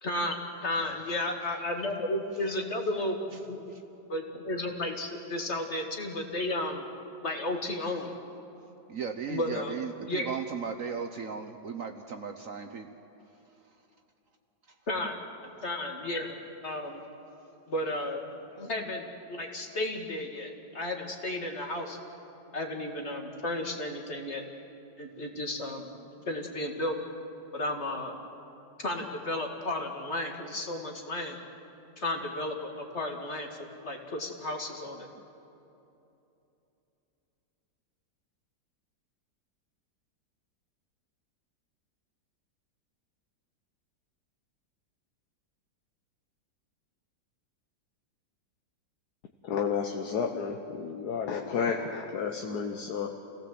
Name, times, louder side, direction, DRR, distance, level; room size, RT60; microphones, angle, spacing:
voice 1, 0.0-3.7 4.1-6.8 7.2-8.1 9.3-9.8 10.1-10.3 14.9-15.2 15.4-17.0 17.7-18.2 18.5-22.0 22.5-24.4 25.0-25.9 26.3-27.0 27.5-28.2 28.8-31.4 32.0-33.5 33.8-35.1, left 1 dB, 40° left, 2 dB, 2.2 m, -33 dB
voice 2, 8.9-12.9 13.7-13.8 14.7-14.8, right 6 dB, 55° right, 6 dB, 1.1 m, -36 dB
voice 3, 49.4-53.1, left 6 dB, 65° left, 4 dB, 1.5 m, -31 dB
27.5 x 17.0 x 7.8 m, 2.9 s
omnidirectional pair, 1.9 m